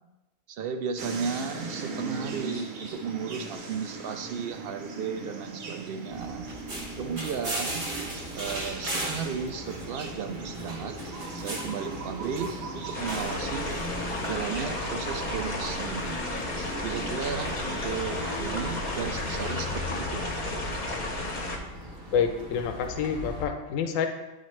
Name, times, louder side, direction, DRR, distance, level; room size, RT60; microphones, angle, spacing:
voice 1, 0.5-6.5 7.0-7.9 8.3-10.9 11.3-13.7 14.2-16.2 16.8-20.2, right 7 dB, 65° right, 7 dB, 0.6 m, -34 dB
sound 1, 1.0-19.5, right 3 dB, 85° right, 1.3 m, -41 dB
sound 2, 6.1-23.5, equal, 45° right, 1.1 m, -38 dB
sound 3, 12.9-21.6, left 2 dB, 40° left, 0.8 m, -33 dB
voice 2, 22.1-24.1, left 7 dB, 75° left, 6 dB, 1.0 m, -27 dB
10.0 x 4.1 x 3.1 m, 1.1 s
omnidirectional pair, 1.4 m